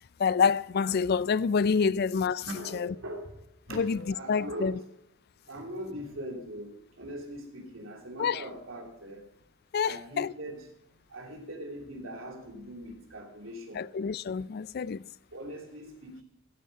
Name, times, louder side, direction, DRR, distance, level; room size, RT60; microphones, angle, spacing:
voice 1, 0.2-2.4 2.7-2.9 3.7-4.0 4.3-4.7 8.2-8.4 9.7-10.3 13.7-15.1, left 6 dB, 50° left, 0.4 m, -27 dB
voice 2, 2.4-3.4 3.7-4.8 5.4-9.2 9.8-10.7 11.1-13.9 15.3-16.2, equal, 80° right, 3.1 m, -41 dB
15.0 x 8.9 x 5.4 m
head